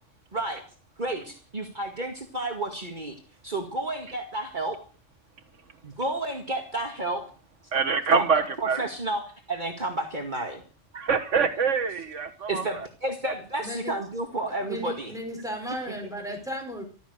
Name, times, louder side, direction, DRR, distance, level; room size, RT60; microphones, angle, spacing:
voice 1, 1.0-3.2 3.4-4.8 5.8-7.2 8.1-10.6 12.5-15.1, right 2 dB, 40° right, 3 dB, 2.2 m, -31 dB
voice 2, 7.7-8.8 10.9-12.6, right 5 dB, 80° right, 7 dB, 1.7 m, -24 dB
voice 3, 13.6-13.9 14.6-16.8, equal, 5° right, 2 dB, 4.9 m, -35 dB
14.5 x 13.0 x 6.7 m, 0.40 s
omnidirectional pair, 1.2 m